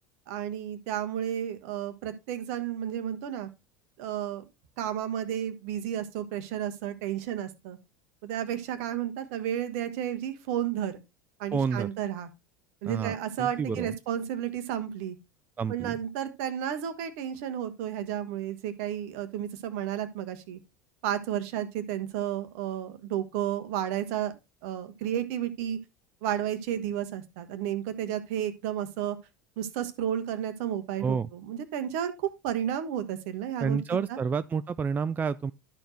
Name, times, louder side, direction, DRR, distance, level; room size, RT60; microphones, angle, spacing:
voice 1, 0.3-3.5 4.0-4.4 4.8-7.8 8.2-11.0 11.4-12.3 12.8-15.2 15.7-20.6 21.0-24.3 24.6-25.8 26.2-29.2 29.6-34.2, right 10 dB, 55° right, 1.3 m, -32 dB
voice 2, 11.5-11.9 12.8-13.9 15.6-16.0 31.0-31.3 33.6-35.5, right 6 dB, 20° right, 0.3 m, -29 dB
12.0 x 4.5 x 4.3 m
figure-of-eight pair, 75°, 10 cm